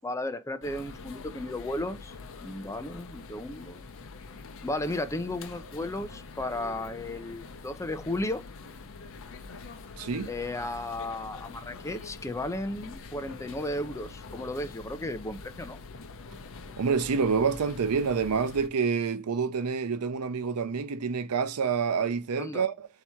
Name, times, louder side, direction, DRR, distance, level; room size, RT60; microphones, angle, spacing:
voice 1, 0.0-3.9 4.6-8.4 10.3-15.8 22.4-22.6, left 1 dB, 15° left, 0.5 m, -34 dB
sound 1, 0.6-18.7, left 4 dB, 65° left, 0.7 m, -45 dB
voice 2, 10.0-10.3 16.8-22.9, right 5 dB, 80° right, 0.5 m, -27 dB
3.4 x 2.9 x 4.3 m
head